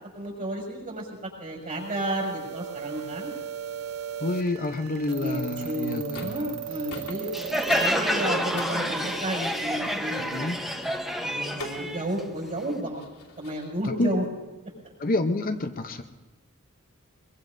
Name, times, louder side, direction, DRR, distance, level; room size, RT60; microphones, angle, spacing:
voice 1, 0.1-3.3 5.2-7.3 7.7-10.7 11.2-13.0 13.4-14.2, right 1 dB, 40° right, -2 dB, 6.3 m, -32 dB
sound 1, 1.7-7.9, right 10 dB, 75° right, 0.8 m, -37 dB
voice 2, 4.2-6.7 10.2-10.6 13.8-14.1 15.0-16.0, left 2 dB, 40° left, 6 dB, 0.8 m, -28 dB
sound 2, 6.1-6.6 6.9-13.9, left 3 dB, 90° left, 2.8 m, -44 dB
Crowd, 7.3-12.8, equal, ahead, 1.0 m, -28 dB
23.0 x 22.5 x 2.7 m, 1.2 s
head